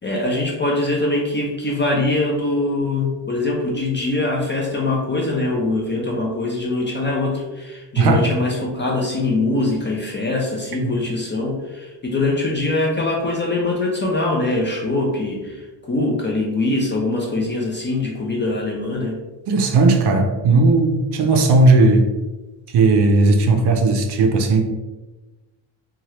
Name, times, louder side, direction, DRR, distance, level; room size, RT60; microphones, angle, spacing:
voice 1, 0.0-19.2, left 2 dB, 25° left, -1 dB, 0.4 m, -23 dB
voice 2, 19.5-22.1 22.7-24.6, right 3 dB, 55° right, 4 dB, 0.5 m, -16 dB
2.8 x 2.3 x 3.1 m, 1.1 s
cardioid pair, 135°, 48 cm